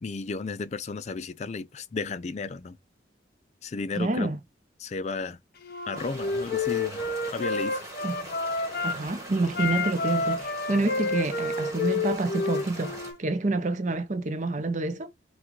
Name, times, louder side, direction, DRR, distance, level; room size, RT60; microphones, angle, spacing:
voice 1, 0.0-2.8 3.6-4.3 4.8-5.4 5.9-7.9, left 4 dB, 40° left, 0.4 m, -34 dB
voice 2, 4.0-4.4 8.0-8.1 8.8-15.1, right 2 dB, 40° right, 0.6 m, -28 dB
Wind instrument woodwind instrument, 5.6-9.0 9.5-13.2, left 3 dB, 55° left, 0.8 m, -29 dB
sound 1, 5.9-13.1, right 1 dB, 15° right, 1.3 m, -42 dB
5.9 x 2.3 x 3.1 m
head